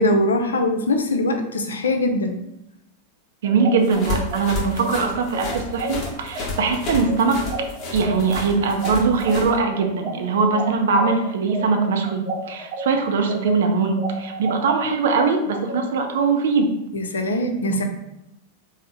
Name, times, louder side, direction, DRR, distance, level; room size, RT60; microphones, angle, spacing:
voice 1, 0.0-2.3 16.9-17.8, left 1 dB, 70° left, 5 dB, 0.4 m, -22 dB
sound 1, 3.4-12.8 13.2-16.3, right 2 dB, 35° right, 0.8 m, -32 dB
voice 2, 3.4-7.4 7.9-12.2 12.5-16.7 17.7-17.8, right 4 dB, 60° right, 4 dB, 0.5 m, -21 dB
sound 2, 3.8-9.5, left 3 dB, 30° left, 0.9 m, -31 dB
3.6 x 2.1 x 3.6 m, 0.84 s
figure-of-eight pair, 90°, 0 cm